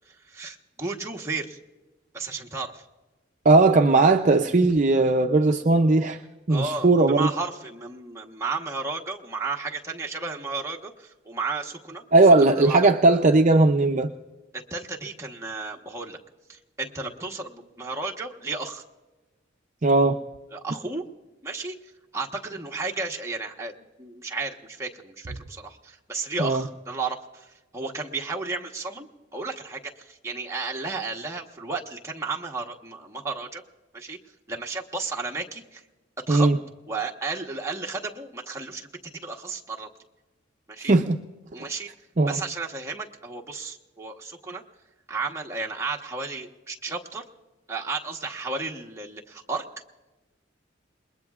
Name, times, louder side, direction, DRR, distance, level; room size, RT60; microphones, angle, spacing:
voice 1, 0.1-1.6 2.1-2.8 6.5-12.0 12.4-12.9 14.5-16.2 16.5-18.8 20.5-21.0 21.4-21.7 22.1-29.1 29.3-33.6 33.9-34.2 34.5-35.8 36.3-36.5 36.9-39.9 40.7-40.9 41.5-41.9 42.3-44.6 45.1-47.2 47.7-49.6, right 3 dB, 15° right, -1 dB, 1.1 m, -33 dB
voice 2, 3.4-6.2 6.5-7.3 12.1-14.1 19.8-20.2 26.4-26.6 36.3-36.6 40.8-41.2 42.2-42.4, right 2 dB, 40° right, 4 dB, 0.5 m, -18 dB
28.0 x 21.0 x 2.4 m, 1.2 s
head